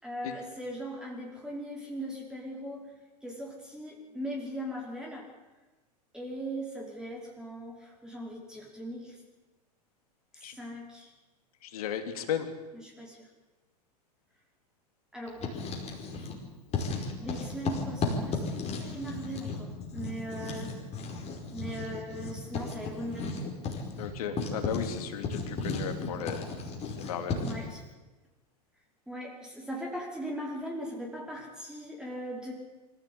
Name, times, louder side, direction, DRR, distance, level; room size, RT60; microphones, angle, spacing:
voice 1, 0.0-2.8 3.2-5.3 6.1-9.2 10.3-11.1 12.8-13.2 15.1-15.4 17.2-20.7 21.5-23.3 27.4-27.8 29.1-32.5, equal, 5° right, -2 dB, 5.1 m, -39 dB
voice 2, 11.6-12.5 23.9-26.5 27.0-27.4, left 8 dB, 60° left, 7 dB, 3.0 m, -35 dB
Writing, 15.3-16.4 16.7-27.7, left 3 dB, 30° left, 5.0 m, -35 dB
25.0 x 15.0 x 8.7 m, 1.2 s
figure-of-eight pair, 95°, 21 cm